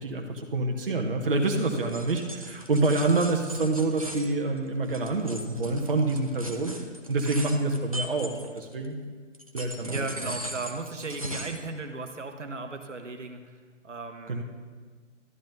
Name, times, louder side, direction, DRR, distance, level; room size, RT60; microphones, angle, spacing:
voice 1, 0.0-6.7 7.1-9.0 9.5-10.3 14.3-14.4, right 2 dB, 45° right, 1 dB, 0.9 m, -27 dB
sound 1, 1.4-8.9 9.3-11.7, equal, 30° right, 0.4 m, -40 dB
voice 2, 7.2-7.5 9.0-9.1 9.8-13.4 13.8-14.4, right 3 dB, 70° right, 5 dB, 1.1 m, -36 dB
12.0 x 10.0 x 2.7 m, 1.5 s
figure-of-eight pair, 155°, 37 cm